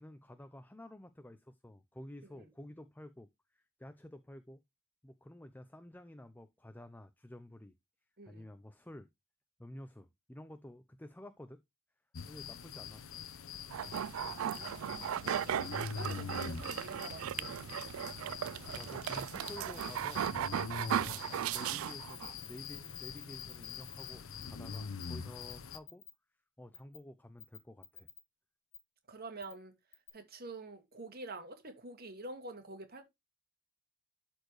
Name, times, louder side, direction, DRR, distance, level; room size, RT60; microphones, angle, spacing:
voice 1, 0.0-4.6 5.0-7.7 8.3-9.1 9.6-11.6 12.3-13.1 18.7-20.3 20.7-26.0 26.6-28.1, left 1 dB, 10° left, 0.5 m, -51 dB
sound 1, 12.1-25.8, left 6 dB, 80° left, 0.8 m, -44 dB
sound 2, 13.7-22.3, right 9 dB, 85° right, 0.3 m, -37 dB
voice 2, 14.2-17.5 29.1-29.7 30.1-33.0, right 3 dB, 50° right, 2.0 m, -47 dB
sound 3, 22.1-24.1 24.4-24.5 24.7-25.1 25.4-26.1 26.7-27.0 27.4-28.2 28.7-28.8 29.4-29.5 29.9-30.1, left 8 dB, 30° left, 2.4 m, -50 dB
12.5 x 4.5 x 3.2 m
head